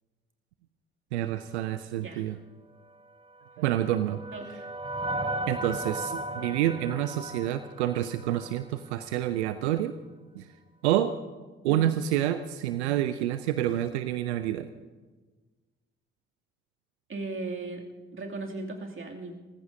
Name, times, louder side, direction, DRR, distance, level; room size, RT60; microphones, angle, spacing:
voice 1, 1.1-2.4 3.6-4.2 5.5-9.9 10.3-10.5 10.8-11.1 11.6-14.7, right 12 dB, 85° right, 12 dB, 0.5 m, -28 dB
sound 1, 3.4-8.7, right 1 dB, 15° right, 0.7 m, -36 dB
voice 2, 4.3-4.6 17.1-17.8 18.1-19.4, right 3 dB, 40° right, 1 dB, 2.7 m, -37 dB
27.5 x 15.0 x 2.8 m, 1.3 s
hypercardioid pair, 40°, 33 cm